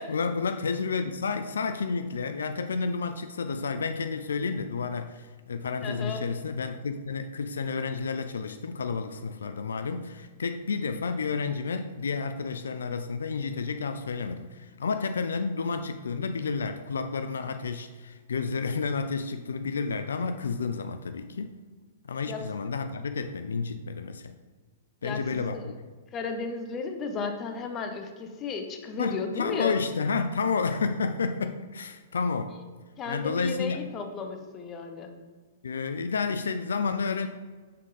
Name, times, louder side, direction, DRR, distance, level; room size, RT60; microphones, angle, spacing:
voice 1, 0.0-21.5 22.1-24.3 25.0-25.7 29.0-32.5 33.1-33.8 35.6-37.3, left 5 dB, 80° left, 9 dB, 0.3 m, -30 dB
voice 2, 5.8-6.2 22.3-22.4 25.0-25.7 26.1-29.7 33.0-35.1, left 4 dB, 25° left, 5 dB, 0.8 m, -34 dB
7.5 x 3.7 x 4.1 m, 1.4 s
hypercardioid pair, 120°, 0 cm